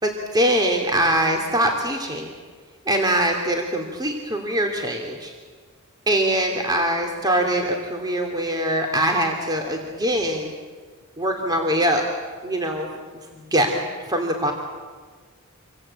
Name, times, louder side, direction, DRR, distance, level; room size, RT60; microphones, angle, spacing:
voice 1, 0.0-2.3 2.9-5.3 6.1-10.5 11.2-12.0 12.4-12.9 13.5-13.8 14.1-14.5, right 1 dB, 20° right, 3 dB, 2.7 m, -22 dB
28.0 x 23.0 x 8.8 m, 1.5 s
head